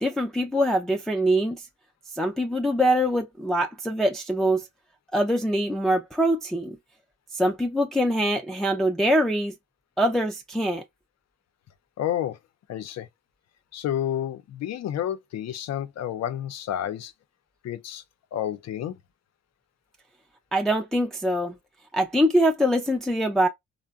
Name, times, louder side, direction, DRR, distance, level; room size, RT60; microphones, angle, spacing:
voice 1, 0.0-1.6 2.1-4.7 5.1-6.8 7.3-9.5 10.0-10.8 20.5-21.6 21.9-23.5, equal, ahead, 0.4 m, -23 dB
voice 2, 12.0-12.4 12.7-13.1 13.7-17.1 17.6-18.0 18.3-19.0, left 11 dB, 60° left, 0.6 m, -30 dB
3.5 x 2.1 x 2.3 m
cardioid pair, 90°, 30 cm